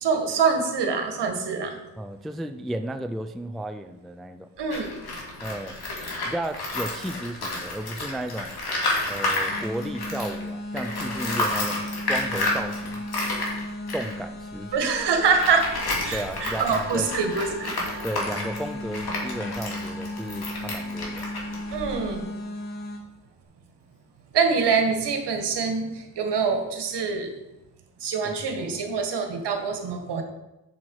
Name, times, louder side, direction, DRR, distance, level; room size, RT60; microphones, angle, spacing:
voice 1, 0.0-1.8 4.6-4.9 14.7-18.0 21.7-22.3 24.3-27.3 28.0-30.2, right 5 dB, 65° right, 5 dB, 1.7 m, -25 dB
voice 2, 2.0-4.5 5.4-5.8 6.2-8.5 9.1-11.8 12.1-13.0 13.9-14.7 16.1-17.1 18.0-21.2 28.2-28.9, right 1 dB, ahead, 9 dB, 0.4 m, -34 dB
Tools, 4.6-10.4 10.7-22.2, left 2 dB, 55° left, 2.8 m, -31 dB
sound 1, 9.5-23.0, left 1 dB, 20° left, 2.3 m, -36 dB
Musical instrument, 15.2-22.9, left 3 dB, 80° left, 1.9 m, -45 dB
7.1 x 6.4 x 4.7 m, 0.95 s
supercardioid pair, 55°, 44 cm